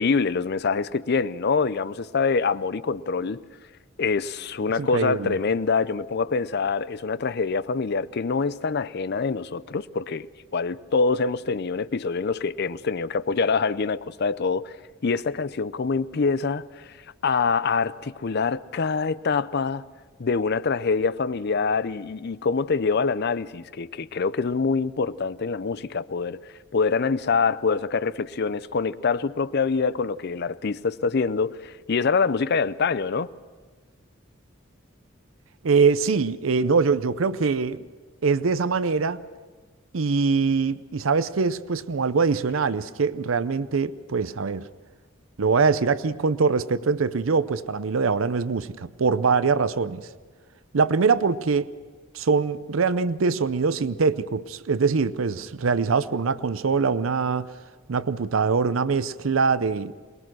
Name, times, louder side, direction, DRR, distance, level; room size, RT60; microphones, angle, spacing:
voice 1, 0.0-3.4 4.0-10.3 10.5-14.7 15.0-16.9 17.2-19.8 20.2-26.4 26.7-33.3, left 4 dB, 55° left, 0.5 m, -25 dB
voice 2, 4.8-5.3 35.6-37.8 38.2-39.2 39.9-44.7 45.4-50.0 50.7-51.7 52.1-57.5 57.9-59.9, right 5 dB, 80° right, 0.6 m, -23 dB
22.5 x 20.5 x 6.2 m
head